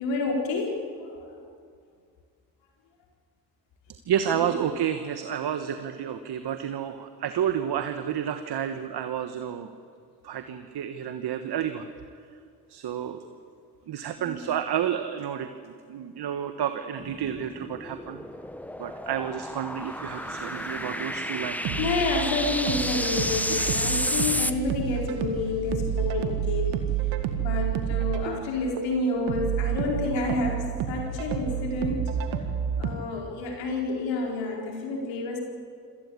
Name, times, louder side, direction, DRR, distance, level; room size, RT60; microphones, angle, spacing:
voice 1, 0.0-1.4 4.3-4.4 14.2-14.5 21.8-26.8 27.4-32.1 32.8-35.4, left 3 dB, 75° left, 0 dB, 4.4 m, -29 dB
voice 2, 4.1-9.7 10.2-11.9 12.7-13.2 13.9-18.2 18.8-21.9 23.5-23.7, right 9 dB, 60° right, 9 dB, 1.4 m, -30 dB
sound 1, 17.0-24.5, left 1 dB, 5° left, 1.2 m, -31 dB
sound 2, 20.2-32.9, right 9 dB, 80° right, 1.9 m, -30 dB
26.0 x 18.0 x 8.5 m, 2.3 s
hypercardioid pair, 50°, 45 cm